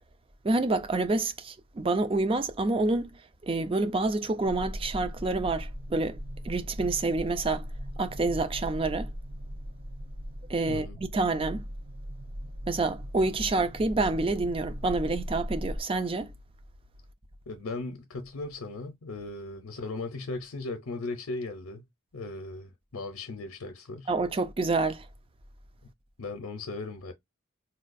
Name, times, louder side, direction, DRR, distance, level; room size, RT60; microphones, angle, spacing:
voice 1, 0.4-3.1 3.4-6.2 6.4-7.6 8.0-9.1 10.5-11.6 12.7-16.3 24.1-25.0, right 3 dB, 25° right, 0.4 m, -28 dB
sound 1, 4.4-15.8, equal, 65° right, 0.6 m, -39 dB
voice 2, 10.7-11.0 17.5-21.8 22.1-24.1 26.2-27.1, left 3 dB, 75° left, 0.6 m, -37 dB
4.1 x 2.3 x 2.5 m
head